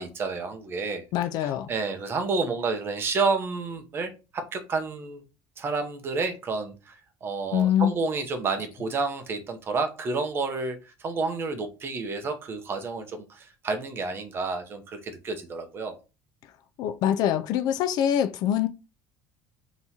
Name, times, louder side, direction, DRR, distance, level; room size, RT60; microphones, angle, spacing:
voice 1, 0.0-1.0 1.4-5.2 5.6-15.9, right 4 dB, 25° right, 0.7 m, -30 dB
voice 2, 1.1-1.7 7.5-7.9 16.8-18.7, left 10 dB, 50° left, 0.4 m, -24 dB
3.5 x 2.9 x 4.1 m
cardioid pair, 165°, 9 cm